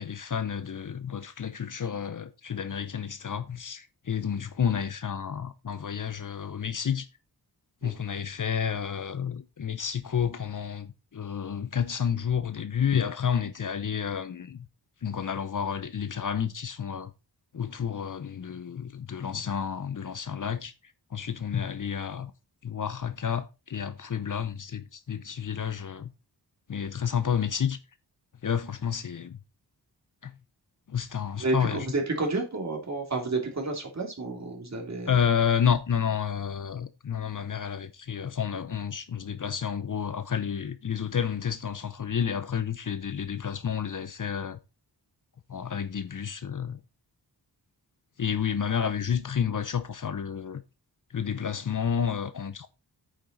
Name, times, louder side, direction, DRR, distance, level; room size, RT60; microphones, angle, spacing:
voice 1, 0.0-7.1 7.8-14.7 15.0-17.1 17.5-20.7 21.1-22.3 22.6-26.1 26.7-27.8 28.4-29.4 30.2-30.3 30.9-31.9 35.1-44.6 45.5-46.8 48.2-50.6 51.1-52.7, left 7 dB, 50° left, 0.8 m, -30 dB
voice 2, 31.4-35.1, right 3 dB, 40° right, 3.1 m, -30 dB
8.9 x 7.4 x 4.0 m
wide cardioid pair, 130°, 41 cm